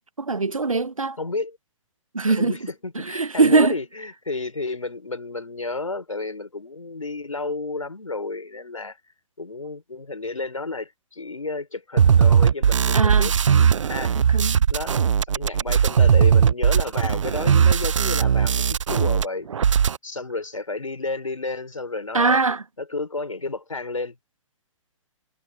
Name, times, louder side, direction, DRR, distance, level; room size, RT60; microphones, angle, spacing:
voice 1, 0.2-1.2 2.1-2.5 2.9-3.8 12.9-13.3 14.1-14.6 22.1-22.6, right 4 dB, 85° right, 1.2 m, -21 dB
voice 2, 1.2-1.6 2.3-9.0 9.4-13.3 13.9-14.1 14.7-15.0 15.3-19.5 20.0-22.4 22.8-24.2, left 3 dB, 85° left, 5.9 m, -31 dB
sound 1, 12.0-19.2 19.5-20.0, right 7 dB, 70° right, 0.7 m, -18 dB
figure-of-eight pair, 120°, 17 cm